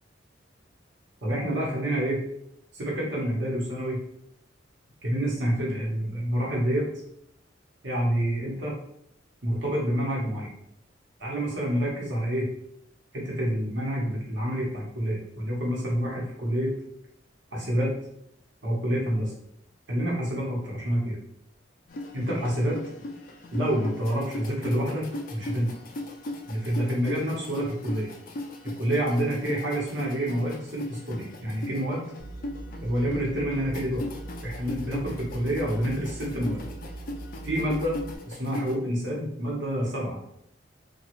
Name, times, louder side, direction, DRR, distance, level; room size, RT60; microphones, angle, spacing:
voice 1, 1.2-2.2 2.7-4.0 5.0-6.9 7.8-8.8 9.4-10.5 11.2-12.5 13.1-16.7 17.5-17.9 18.6-19.3 19.9-21.2 22.1-22.8 23.5-25.0 25.3-25.7 26.5-28.1 28.8-32.0 32.8-34.1 34.4-36.7 37.4-38.0 38.2-40.2, equal, 65° right, -4 dB, 1.0 m, -28 dB
sound 1, 21.9-38.7, left 1 dB, 50° left, 0.4 m, -38 dB
sound 2, 32.2-38.1, right 2 dB, 35° right, 0.3 m, -41 dB
3.0 x 2.3 x 3.0 m, 0.74 s
head